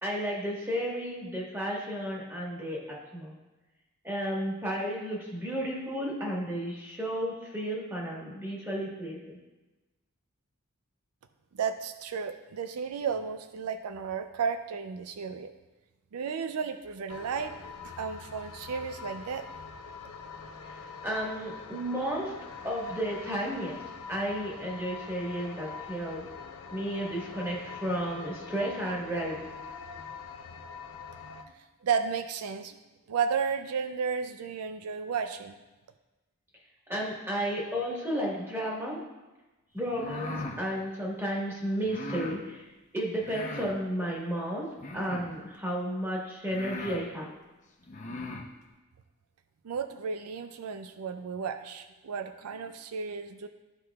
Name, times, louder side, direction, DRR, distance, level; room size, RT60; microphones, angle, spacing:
voice 1, 0.0-3.3 4.0-9.4 20.8-22.3 22.6-23.8 24.1-26.2 26.7-29.4 36.9-39.0 39.7-42.6 42.9-44.7 44.9-47.3, equal, 10° right, -4 dB, 1.5 m, -33 dB
voice 2, 11.6-15.5 16.1-17.5 18.0-19.4 31.8-32.8 33.1-35.6 49.6-53.5, right 6 dB, 85° right, 9 dB, 0.4 m, -33 dB
sound 1, 17.1-31.4, left 5 dB, 85° left, 0.6 m, -44 dB
sound 2, 39.8-40.6 41.8-42.4 43.2-43.8 44.8-45.4 46.1-46.2 46.5-47.0 47.8-48.5, left 2 dB, 35° left, 0.7 m, -39 dB
12.5 x 4.7 x 2.3 m, 1.1 s
head